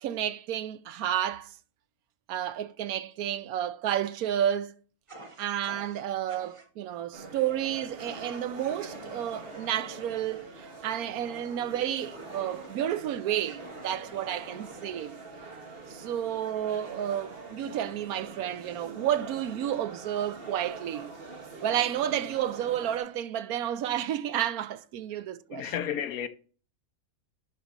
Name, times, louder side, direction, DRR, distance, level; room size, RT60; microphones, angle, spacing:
voice 1, 0.0-1.5 2.3-4.7 5.4-15.2 15.9-21.1 21.6-25.7, right 10 dB, 80° right, 1.1 m, -31 dB
Fire, 5.1-6.7 8.0-8.4 8.8-12.9 13.4-15.3, right 2 dB, 25° right, 0.9 m, -49 dB
sound 1, 7.1-23.0, right 3 dB, 40° right, 1.6 m, -44 dB
voice 2, 25.5-26.3, left 9 dB, 75° left, 1.2 m, -32 dB
11.0 x 4.1 x 5.1 m
omnidirectional pair, 1.5 m